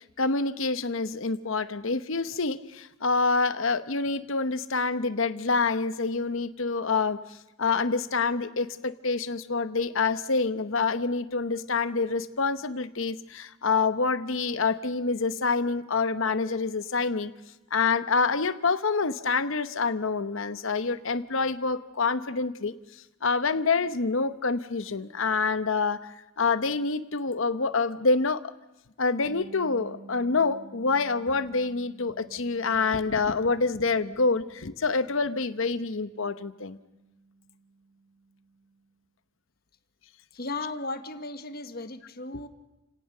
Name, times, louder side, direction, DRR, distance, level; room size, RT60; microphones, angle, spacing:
voice 1, 0.0-17.3 17.7-28.4 29.0-36.8, left 4 dB, 60° left, 12 dB, 0.9 m, -27 dB
Bass guitar, 29.2-38.9, right 3 dB, 75° right, 7.8 m, -52 dB
voice 2, 40.3-42.5, left 2 dB, 45° left, 9 dB, 1.5 m, -35 dB
29.0 x 18.0 x 6.7 m, 1.0 s
head